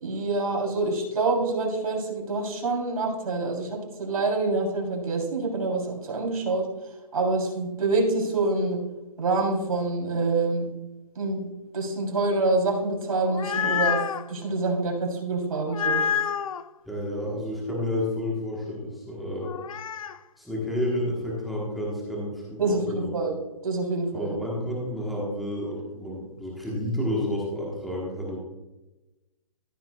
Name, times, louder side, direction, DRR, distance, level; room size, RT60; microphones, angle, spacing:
voice 1, 0.0-8.8 9.2-10.7 11.2-11.5 11.7-14.0 14.3-16.0 22.6-23.4 23.6-24.4, right 3 dB, 75° right, 0 dB, 3.3 m, -26 dB
sound 1, 13.1-14.3 15.7-16.6 19.4-20.2, left 7 dB, 65° left, 0.5 m, -27 dB
voice 2, 16.8-19.5 20.4-23.1 24.1-28.4, left 1 dB, ahead, -5 dB, 1.2 m, -30 dB
14.0 x 7.5 x 2.3 m, 1.1 s
hypercardioid pair, 170°, 19 cm